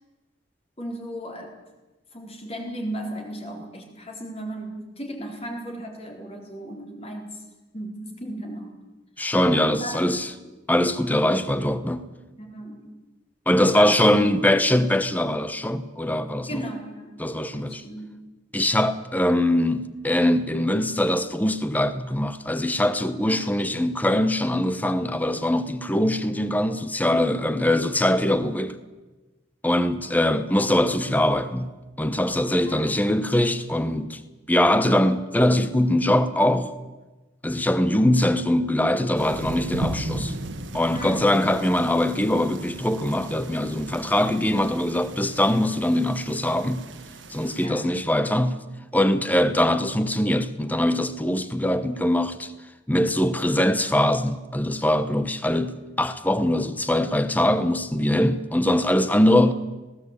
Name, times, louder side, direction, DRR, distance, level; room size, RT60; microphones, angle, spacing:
voice 1, 0.8-1.5 2.1-7.4 7.7-8.8 9.6-10.0 10.4-10.5 12.4-12.9 13.5-14.4 16.5-17.1 17.5-18.1 23.3-23.5 27.1-27.5 32.6-33.0 40.9-41.3 47.5-47.8 51.6-51.9, right 1 dB, 35° left, 4.1 m, -35 dB
voice 2, 9.2-10.3 10.7-12.1 13.5-16.5 17.2-17.8 18.5-28.8 29.6-34.2 34.5-36.7 37.4-40.3 40.7-46.9 47.3-48.6 48.9-52.5 52.9-59.5, left 1 dB, 10° left, 1.0 m, -22 dB
sound 1, 39.2-47.7, right 1 dB, 85° right, 1.6 m, -36 dB
18.5 x 17.5 x 8.4 m
head